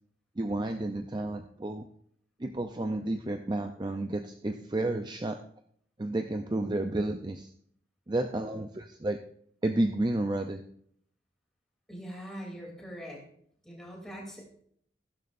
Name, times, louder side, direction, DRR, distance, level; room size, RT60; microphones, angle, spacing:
voice 1, 0.4-1.8 2.4-5.4 6.0-7.5 8.1-9.2 9.6-10.6, right 2 dB, 25° right, 6 dB, 0.5 m, -31 dB
voice 2, 11.9-13.2 13.6-14.5, equal, 5° left, -3 dB, 3.0 m, -42 dB
15.0 x 12.0 x 2.6 m, 0.64 s
head